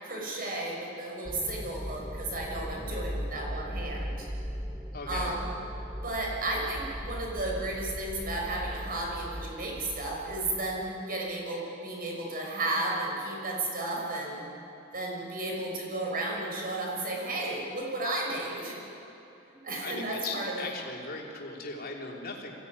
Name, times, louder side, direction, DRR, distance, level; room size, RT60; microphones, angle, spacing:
voice 1, 0.0-4.3 5.1-5.5 6.0-14.5 14.9-18.8 19.6-20.6, right 2 dB, 45° right, -1 dB, 5.8 m, -33 dB
sound 1, 1.2-10.9, equal, 10° right, 1.1 m, -38 dB
voice 2, 4.9-5.4 19.8-22.5, left 3 dB, 45° left, -1 dB, 3.5 m, -38 dB
23.5 x 17.5 x 9.6 m, 2.9 s
head